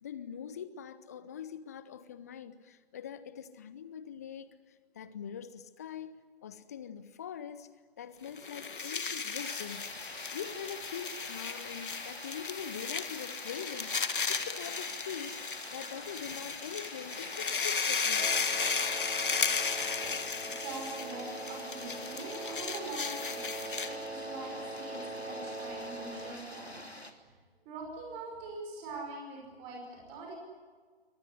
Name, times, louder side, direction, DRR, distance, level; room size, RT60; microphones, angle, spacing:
voice 1, 0.0-7.7 8.0-9.9 10.3-13.9 14.3-15.4 15.7-18.3, left 8 dB, 15° left, 15 dB, 0.7 m, -43 dB
sound 1, 8.3-24.1, left 5 dB, 55° left, 1.9 m, -35 dB
sound 2, 9.4-27.1, left 1 dB, 90° left, 2.9 m, -47 dB
Wind instrument woodwind instrument, 18.1-26.4, right 2 dB, 85° right, 2.8 m, -43 dB
voice 2, 19.6-26.9 27.2-27.3 27.7-30.3, right 3 dB, 15° right, 0 dB, 5.5 m, -44 dB
24.0 x 19.0 x 9.8 m, 1.5 s
figure-of-eight pair, 145°, 31 cm